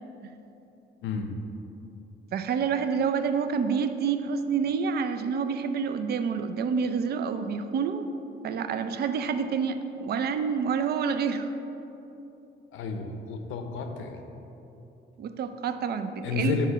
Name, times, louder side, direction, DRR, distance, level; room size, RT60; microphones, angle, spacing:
voice 1, 1.0-1.3 12.7-14.2 16.2-16.7, left 5 dB, 85° left, 5 dB, 0.7 m, -31 dB
voice 2, 2.3-8.1 8.4-11.5 15.2-16.6, right 6 dB, 55° right, 9 dB, 0.4 m, -28 dB
8.0 x 3.1 x 5.6 m, 3.0 s
cardioid pair, 90°, 20 cm